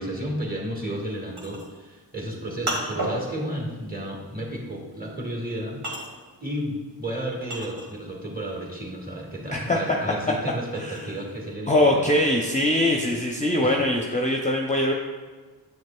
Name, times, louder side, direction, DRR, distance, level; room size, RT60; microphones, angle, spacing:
voice 1, 0.0-5.8 6.4-12.2 13.6-13.8, right 1 dB, 20° right, -1 dB, 1.7 m, -32 dB
sound 1, 0.9-8.3 8.6-11.5, right 1 dB, 60° right, 1.6 m, -35 dB
voice 2, 9.5-10.0 10.8-11.0 11.7-14.9, left 1 dB, 15° left, 0 dB, 0.6 m, -22 dB
7.3 x 6.3 x 2.3 m, 1.3 s
cardioid pair, 65°, 44 cm